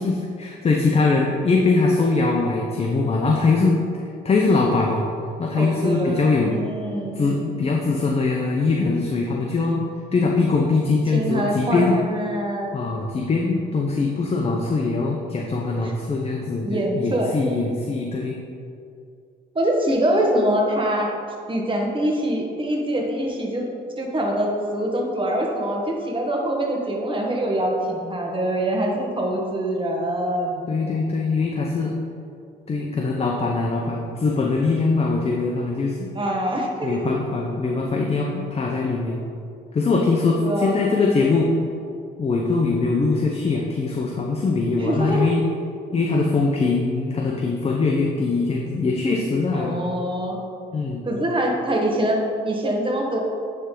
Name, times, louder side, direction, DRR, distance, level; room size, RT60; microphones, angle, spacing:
voice 1, 0.0-3.8 4.2-5.1 5.4-6.6 7.2-9.9 10.1-12.0 12.7-18.4 30.7-31.9 32.7-36.1 36.8-39.2 39.7-41.5 42.2-45.4 45.9-49.8 50.7-51.0, left 3 dB, 30° left, 0 dB, 0.6 m, -22 dB
voice 2, 5.6-7.3 11.1-12.7 15.8-15.9 16.6-17.3 19.5-21.1 21.5-23.7 24.0-30.6 36.1-37.2 40.3-40.8 44.8-45.3 49.5-50.4 51.0-53.2, right 1 dB, 25° right, -1 dB, 1.3 m, -24 dB
9.3 x 3.4 x 3.8 m, 2.4 s
cardioid pair, 90°, 20 cm